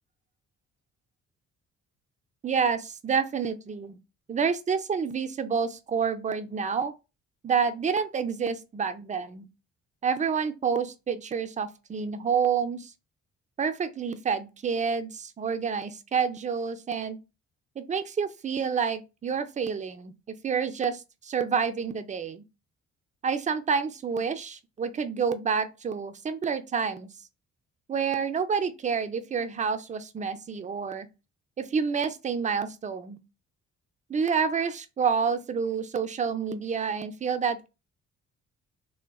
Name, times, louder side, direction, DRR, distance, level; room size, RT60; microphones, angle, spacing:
voice 1, 2.4-4.0 4.3-6.9 7.4-9.5 10.0-12.9 13.6-17.2 17.8-22.4 23.2-27.1 27.9-31.1 31.6-33.2 34.1-37.7, right 6 dB, 25° right, 0.4 m, -28 dB
3.6 x 2.1 x 2.2 m
cardioid pair, 90°, 30 cm